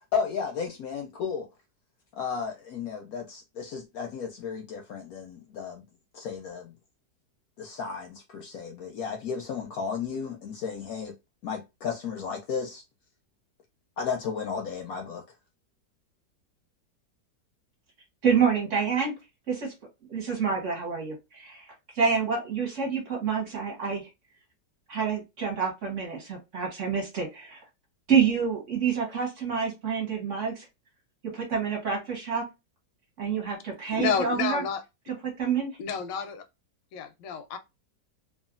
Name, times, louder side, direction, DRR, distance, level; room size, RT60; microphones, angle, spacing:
voice 1, 0.1-1.5 2.2-5.9 6.1-6.7 7.6-11.2 11.4-12.8 14.0-15.2, left 6 dB, 70° left, 0.9 m, -33 dB
voice 2, 18.2-19.1 19.5-19.7 20.1-21.6 21.9-24.1 24.9-27.6 28.1-30.6 31.3-32.4 33.2-34.6 35.4-35.7, right 6 dB, 50° right, 1.1 m, -27 dB
voice 3, 33.9-34.8 35.8-36.4 36.9-37.6, left 7 dB, 90° left, 1.3 m, -30 dB
3.0 x 2.4 x 2.4 m
omnidirectional pair, 1.9 m